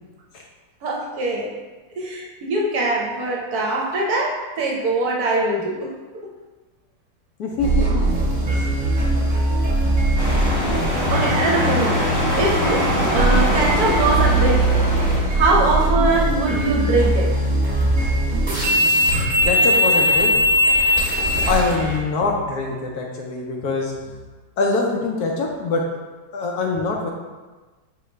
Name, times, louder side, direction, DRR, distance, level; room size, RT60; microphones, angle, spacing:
voice 1, 0.8-1.5 2.0-5.9 9.2-9.4 10.7-10.8 11.1-12.0 12.3-14.7 15.3-17.3 21.4-21.5, right 2 dB, 65° right, -1 dB, 1.1 m, -22 dB
voice 2, 7.4-7.8 8.5-8.7 19.4-20.4 21.5-23.9 24.6-25.9 26.3-27.1, left 3 dB, 70° left, 0 dB, 1.0 m, -23 dB
sound 1, 7.6-22.0, right 1 dB, 30° right, 1.0 m, -20 dB
sound 2, 10.2-15.2, equal, 25° left, 0.4 m, -23 dB
5.7 x 3.0 x 3.1 m, 1.3 s
omnidirectional pair, 1.9 m